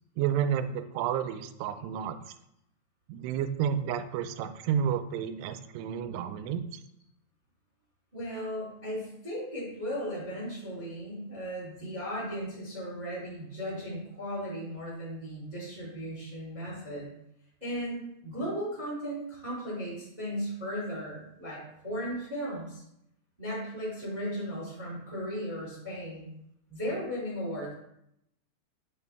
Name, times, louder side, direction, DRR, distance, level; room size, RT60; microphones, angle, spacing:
voice 1, 0.2-2.2 3.1-6.8, right 8 dB, 90° right, 11 dB, 2.6 m, -31 dB
voice 2, 8.1-17.1 17.6-22.8 23.4-26.3 26.7-27.7, equal, 10° right, -7 dB, 2.1 m, -36 dB
6.8 x 5.9 x 3.4 m, 0.78 s
omnidirectional pair, 4.6 m